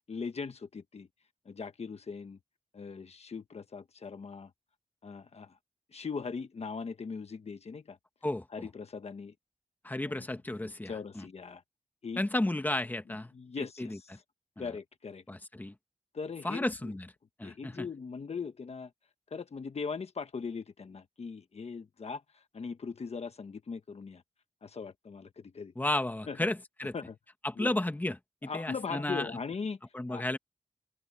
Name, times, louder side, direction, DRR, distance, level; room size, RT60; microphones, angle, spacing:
voice 1, 0.1-1.1 1.5-2.4 2.7-4.5 5.0-5.5 5.9-8.0 8.5-9.3 10.0-10.2 10.6-11.6 12.0-12.2 13.3-14.0 14.6-15.2 16.1-16.9 17.4-18.9 19.3-22.2 22.5-24.2 24.6-25.7 26.3-26.4 26.9-27.2 27.6-27.7 28.4-29.8 30.1-30.2, left 5 dB, 55° left, 1.3 m, -40 dB
voice 2, 8.2-8.7 9.8-11.3 12.2-13.3 13.6-14.2 14.6-14.7 15.3-15.7 16.4-17.1 17.4-17.9 25.7-26.9 27.4-29.3 29.9-30.4, left 1 dB, 15° left, 1.4 m, -33 dB
open air
wide cardioid pair, 110°, 12 cm